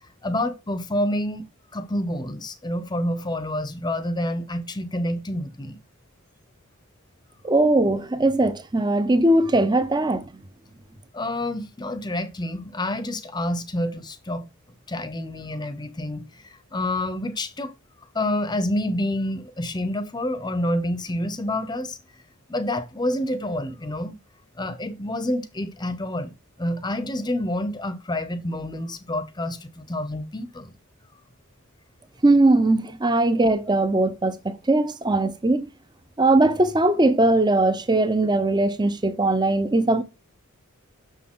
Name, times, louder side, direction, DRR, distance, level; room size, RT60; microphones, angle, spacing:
voice 1, 0.2-1.4 1.7-5.8 11.1-14.5 14.9-17.7 18.1-22.0 22.5-24.2 24.6-26.3 26.6-30.7, left 1 dB, 20° left, 0.8 m, -28 dB
voice 2, 7.4-10.3 32.2-35.7 36.2-40.0, right 2 dB, 20° right, 0.7 m, -20 dB
6.6 x 6.4 x 3.7 m
head